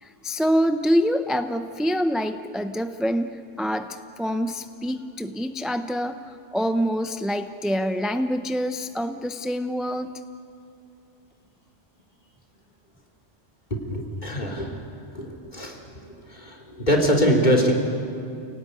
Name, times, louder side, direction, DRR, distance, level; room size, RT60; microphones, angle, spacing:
voice 1, 0.0-10.1, equal, ahead, 8 dB, 0.5 m, -26 dB
voice 2, 13.7-14.8 15.1-15.8 16.3-17.7, equal, 35° left, -1 dB, 3.5 m, -23 dB
28.5 x 18.0 x 9.6 m, 2.6 s
omnidirectional pair, 1.3 m